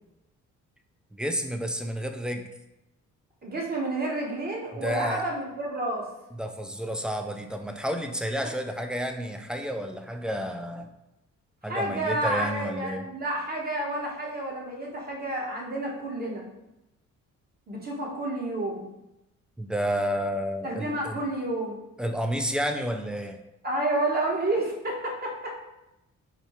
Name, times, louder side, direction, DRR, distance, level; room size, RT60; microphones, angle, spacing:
voice 1, 1.1-2.5 4.7-5.2 6.3-10.9 11.6-13.0 19.6-21.2 22.0-23.4, equal, 5° right, 5 dB, 0.3 m, -30 dB
voice 2, 3.4-6.1 8.3-8.5 11.6-16.5 17.7-18.9 20.6-21.8 23.6-25.6, right 1 dB, 30° right, -2 dB, 1.2 m, -30 dB
4.3 x 2.7 x 3.1 m, 0.91 s
cardioid pair, 90°, 30 cm